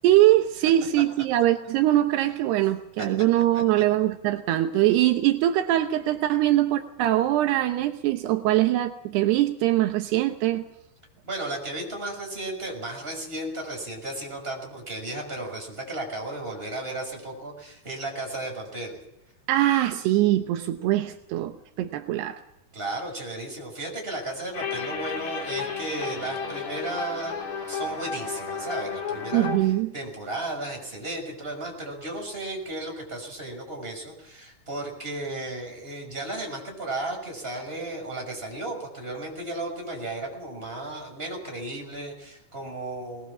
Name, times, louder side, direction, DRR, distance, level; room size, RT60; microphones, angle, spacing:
voice 1, 0.0-10.6 19.5-22.4 29.3-29.9, right 14 dB, 80° right, 7 dB, 3.0 m, -22 dB
voice 2, 11.2-19.0 22.7-27.3 27.7-43.3, right 2 dB, 15° right, 1 dB, 6.2 m, -34 dB
sound 1, 24.5-29.6, left 5 dB, 70° left, 5.6 m, -33 dB
21.0 x 20.5 x 7.3 m, 0.86 s
omnidirectional pair, 4.8 m